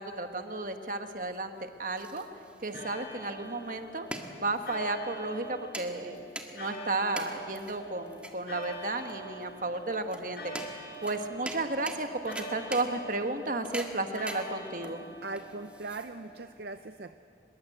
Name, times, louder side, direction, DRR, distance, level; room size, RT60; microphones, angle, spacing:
voice 1, 0.0-2.3 2.6-4.1 4.4-6.2 6.5-15.0, right 2 dB, 45° right, 6 dB, 1.5 m, -33 dB
sound 1, 1.5-16.5, right 1 dB, 5° right, 1.6 m, -44 dB
sound 2, 2.7-16.6, right 2 dB, 60° left, 4.6 m, -45 dB
voice 2, 15.2-17.2, right 3 dB, 65° right, 9 dB, 0.6 m, -40 dB
25.5 x 22.0 x 8.0 m, 2.6 s
head